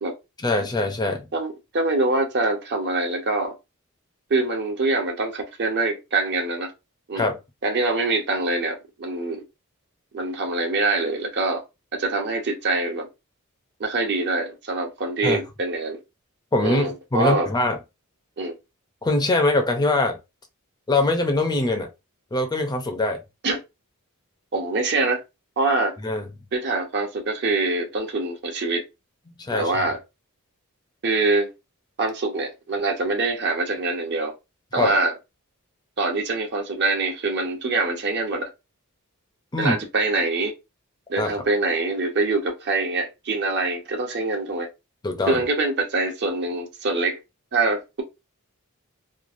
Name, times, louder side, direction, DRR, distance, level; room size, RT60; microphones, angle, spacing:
voice 1, 0.4-1.3 7.2-7.4 15.2-15.4 16.5-17.8 19.0-20.2 20.9-21.9 22.3-23.2 26.0-26.3 29.4-29.9 34.8-35.0 39.5-39.8 41.2-41.3 45.0-45.4, left 2 dB, 20° left, 0.5 m, -23 dB
voice 2, 1.3-3.5 4.3-6.7 7.1-7.3 7.6-9.4 10.1-11.6 11.9-13.1 13.8-16.0 16.6-17.5 18.4-18.5 23.4-23.6 24.5-25.2 25.6-26.0 26.5-28.8 29.5-30.0 31.0-31.5 32.0-34.3 34.7-35.1 36.0-38.5 39.6-40.5 41.1-44.7 45.3-47.2 47.5-48.0, right 3 dB, 50° right, 0.7 m, -24 dB
3.1 x 2.4 x 2.4 m
head